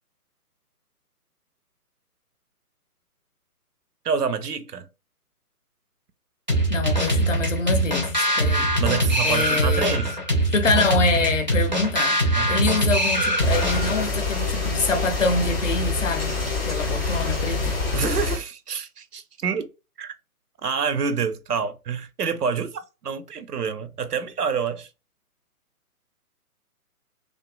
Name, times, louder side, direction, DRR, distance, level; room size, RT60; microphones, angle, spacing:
voice 1, 4.0-4.8 8.8-10.2 12.4-12.7 17.9-19.7 20.0-20.1 20.6-24.9, right 6 dB, 80° right, 0.6 m, -27 dB
sound 1, 6.5-14.1, right 1 dB, 35° right, 0.4 m, -22 dB
voice 2, 6.7-8.7 9.2-10.0 10.5-12.2 12.5-16.4 16.6-17.8, left 3 dB, 55° left, 0.6 m, -25 dB
sound 2, 13.4-18.4, left 3 dB, 15° left, 0.7 m, -26 dB
2.5 x 2.2 x 2.2 m
figure-of-eight pair, 135°, 46 cm